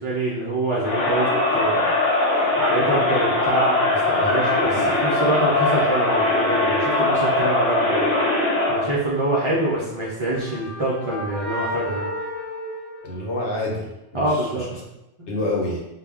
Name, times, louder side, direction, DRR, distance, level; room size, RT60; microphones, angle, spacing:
voice 1, 0.0-8.0 8.7-12.1 14.1-14.7 15.2-15.4, right 1 dB, 55° right, -7 dB, 0.3 m, -25 dB
Crowd, 0.8-8.9, left 2 dB, 55° left, 0.9 m, -21 dB
sound 1, 9.8-13.7, left 1 dB, 35° left, 0.4 m, -33 dB
voice 2, 13.0-14.7 15.3-15.8, left 2 dB, 75° left, -3 dB, 1.0 m, -28 dB
2.2 x 2.1 x 3.5 m, 0.94 s
omnidirectional pair, 1.2 m